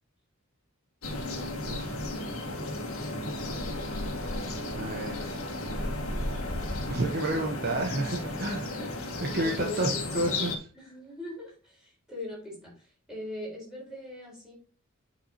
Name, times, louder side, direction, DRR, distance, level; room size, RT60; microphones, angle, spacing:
sound 1, 1.0-10.6, left 2 dB, 75° left, 1.8 m, -34 dB
voice 1, 4.7-5.2 6.9-8.8 9.2-10.7, right 1 dB, 45° right, 1 dB, 1.0 m, -30 dB
voice 2, 8.5-10.4 10.7-14.5, left 1 dB, 5° right, -4 dB, 4.3 m, -41 dB
8.6 x 5.7 x 2.8 m, 0.38 s
head